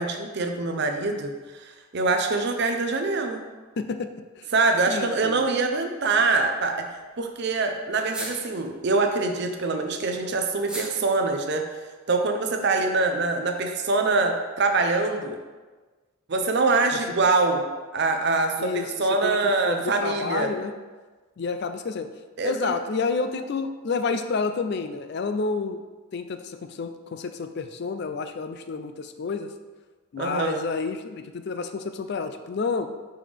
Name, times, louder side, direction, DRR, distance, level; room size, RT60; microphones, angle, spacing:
voice 1, 0.0-3.4 4.5-6.8 7.2-11.7 12.1-15.4 16.3-17.6 17.9-20.5 22.4-22.8 30.2-30.6, right 3 dB, 50° right, 4 dB, 0.6 m, -24 dB
voice 2, 3.8-4.1 4.4-4.5 4.9-5.4 18.6-20.7 21.4-22.1 22.4-25.8 26.1-29.5 30.1-32.9, left 4 dB, 50° left, 9 dB, 0.4 m, -29 dB
sound 1, 6.0-6.4 6.7-6.8 7.0-7.1 7.3-7.4 7.9-8.8 9.4-11.6, right 1 dB, 5° right, 0.7 m, -39 dB
5.7 x 5.1 x 3.4 m, 1.3 s
head